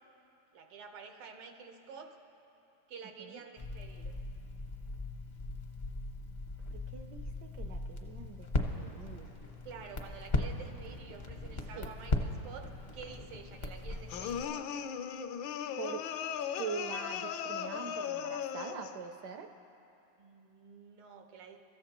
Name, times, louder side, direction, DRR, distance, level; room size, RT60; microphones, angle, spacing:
voice 1, 0.5-2.2 2.9-4.1 9.7-14.9 20.2-21.6, right 5 dB, 90° right, 4 dB, 2.0 m, -49 dB
Crackle, 3.6-14.4, left 2 dB, 45° left, 0.5 m, -38 dB
voice 2, 6.7-8.5 8.8-9.4 11.8-11.9 15.8-16.0 16.6-19.5, right 6 dB, 70° right, 6 dB, 1.0 m, -43 dB
sound 1, 14.1-19.0, left 8 dB, 75° left, 1.2 m, -37 dB
29.0 x 14.0 x 3.0 m, 2.8 s
omnidirectional pair, 2.4 m